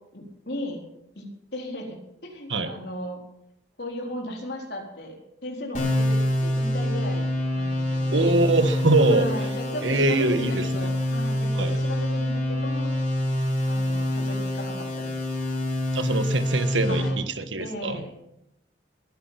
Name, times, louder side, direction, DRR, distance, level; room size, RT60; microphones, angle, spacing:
voice 1, 0.1-0.8 1.2-2.0 2.2-3.2 3.8-5.2 5.4-8.3 9.1-12.9 13.7-15.2 16.9-17.2 17.6-18.1, left 1 dB, 60° left, 1 dB, 4.3 m, -36 dB
sound 1, 5.7-17.1, left 1 dB, 45° left, 5.9 m, -26 dB
voice 2, 8.1-9.3 9.8-10.9 11.5-11.7 15.9-18.0, right 2 dB, 85° right, 10 dB, 1.5 m, -23 dB
21.0 x 10.5 x 5.9 m, 0.80 s
head